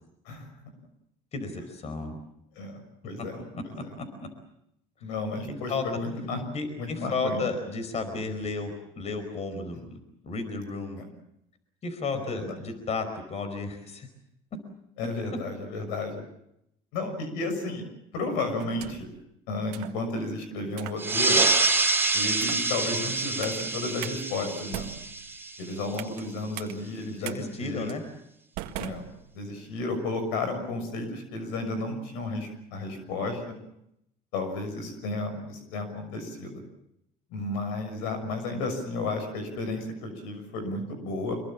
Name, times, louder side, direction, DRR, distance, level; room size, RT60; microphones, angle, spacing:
voice 1, 1.3-2.2 3.2-3.3 3.5-3.6 4.0-4.3 5.5-5.8 6.5-10.0 10.2-11.0 11.8-14.1 27.1-28.0, left 3 dB, 45° left, 9 dB, 4.9 m, -33 dB
voice 2, 2.6-3.9 5.0-6.4 6.8-7.4 11.0-11.1 12.3-12.6 15.0-16.2 16.9-17.8 18.1-19.1 19.5-21.5 22.1-24.9 25.6-27.9 28.8-29.1 29.3-33.5 34.3-36.6 37.3-41.4, left 2 dB, 85° left, 7 dB, 6.4 m, -33 dB
sound 1, 18.6-19.2 19.7-20.0 20.7-21.0 21.6-21.9 22.3-22.7 23.4-23.6 24.0-24.2 24.6-26.2 26.6-26.7 27.2-27.4 27.9-28.0 28.6-29.6, right 14 dB, 85° right, 1.8 m, -40 dB
sound 2, 21.0-26.1, right 3 dB, 15° right, 2.8 m, -26 dB
25.5 x 22.5 x 7.3 m, 0.79 s
supercardioid pair, 95°, 16 cm